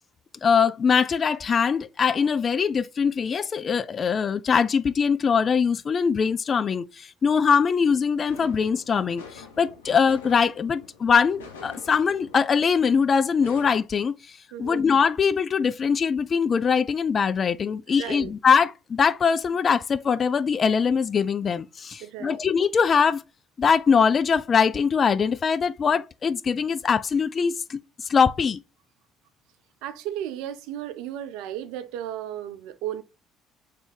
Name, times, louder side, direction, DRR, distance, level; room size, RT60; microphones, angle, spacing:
voice 1, 0.4-14.1 14.6-23.2 23.6-27.8 28.1-28.6, left 6 dB, 40° left, 0.3 m, -22 dB
sound 1, 8.3-13.8, left 5 dB, 85° left, 0.7 m, -46 dB
voice 2, 14.5-14.8 18.0-18.3 22.0-22.5 29.8-33.0, right 11 dB, 70° right, 0.5 m, -34 dB
3.4 x 2.8 x 4.2 m
hypercardioid pair, 55°, 0 cm